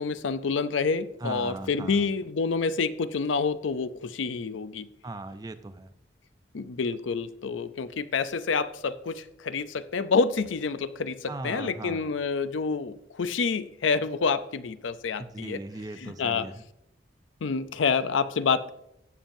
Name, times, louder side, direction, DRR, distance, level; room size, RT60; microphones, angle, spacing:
voice 1, 0.0-4.9 6.5-15.6 16.0-16.5 17.4-18.7, left 5 dB, 90° left, 0.5 m, -28 dB
voice 2, 1.2-2.1 5.0-5.9 11.3-12.1 15.2-16.6, right 2 dB, 20° right, 0.4 m, -38 dB
16.0 x 7.1 x 2.6 m
head